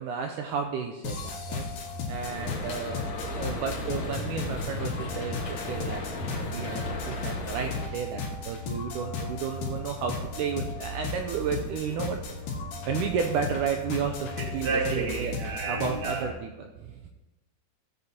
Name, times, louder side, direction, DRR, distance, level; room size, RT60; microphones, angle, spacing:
voice 1, 0.0-1.7 2.1-3.0 3.3-12.2 12.9-15.3 15.7-17.1, right 6 dB, 85° right, 4 dB, 1.8 m, -32 dB
sound 1, 1.0-16.3, left 3 dB, 75° left, 3.4 m, -35 dB
sound 2, 2.2-7.9, left 2 dB, 55° left, 2.3 m, -36 dB
voice 2, 14.4-16.3, right 4 dB, 40° right, -1 dB, 1.3 m, -31 dB
17.0 x 8.1 x 2.9 m, 1.1 s
omnidirectional pair, 4.3 m